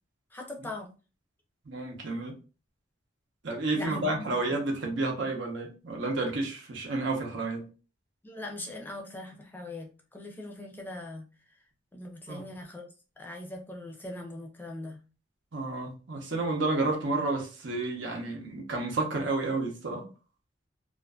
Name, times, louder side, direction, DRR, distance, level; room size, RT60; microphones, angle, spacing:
voice 1, 0.3-0.9 3.7-4.6 8.2-11.2 11.9-12.9 13.2-15.0, left 2 dB, 10° left, 1 dB, 0.5 m, -41 dB
voice 2, 1.7-2.3 3.4-7.6 12.3-12.4 15.5-20.1, right 2 dB, 75° right, 1 dB, 0.8 m, -31 dB
2.5 x 2.4 x 2.3 m, 0.33 s
head